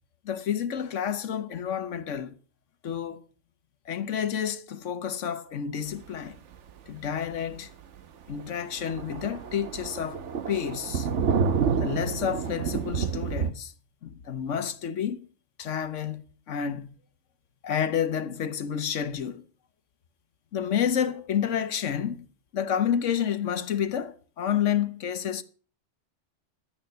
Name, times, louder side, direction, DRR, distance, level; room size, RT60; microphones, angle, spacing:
voice 1, 0.2-2.3 2.8-3.2 3.9-6.4 6.9-7.7 8.3-11.1 11.8-13.7 14.0-15.3 15.6-16.2 16.5-17.0 17.6-19.4 20.5-22.3 22.5-25.4, left 8 dB, 80° left, 1.3 m, -29 dB
Thunder, 6.5-6.7 7.1-7.2 7.5-7.6 8.0-8.1 8.3-13.5, right 6 dB, 75° right, 1.2 m, -29 dB
12.0 x 9.1 x 6.6 m
omnidirectional pair, 1.3 m